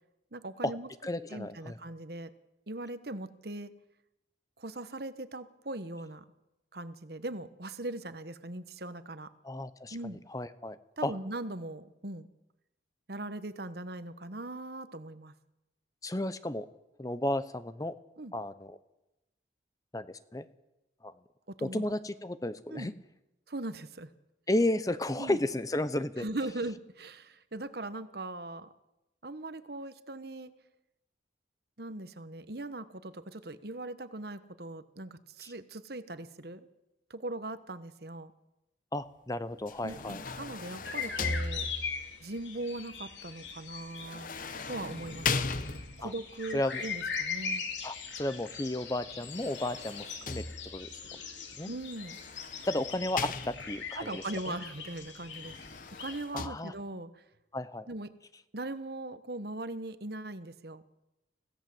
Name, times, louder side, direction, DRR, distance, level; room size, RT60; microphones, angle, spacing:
voice 1, 0.3-0.9 1.3-2.3 2.7-3.7 4.6-6.2 6.7-9.3 9.9-10.2 11.0-12.3 13.1-15.3 18.2-18.3 21.5-21.8 22.7-22.9 23.5-24.1 25.1-25.4 26.2-28.7 29.2-30.5 31.8-36.7 37.1-38.3 39.8-41.7 42.2-44.3 44.7-45.5 46.0-47.6 51.7-52.2 54.0-55.6 56.0-57.2 57.9-58.1 58.5-60.8, right 2 dB, 55° right, 12 dB, 1.2 m, -40 dB
voice 2, 1.0-1.8 9.4-10.0 10.3-11.1 16.0-16.7 17.0-18.0 18.3-18.8 19.9-20.5 21.0-21.1 21.6-22.9 24.5-26.2 35.4-35.5 38.9-40.2 46.0-46.1 46.5-46.8 47.8-50.4 50.7-50.9 51.5-51.7 52.6-54.6 56.3-56.7 57.5-57.9, left 1 dB, 20° left, 13 dB, 0.7 m, -33 dB
sound 1, 39.7-42.1 44.0-46.2 49.1-51.0 52.0-53.9 55.3-56.5, left 4 dB, 45° left, 1.0 m, -38 dB
sound 2, 40.8-56.2, left 6 dB, 75° left, 3.0 m, -41 dB
25.5 x 16.5 x 7.8 m, 0.96 s
head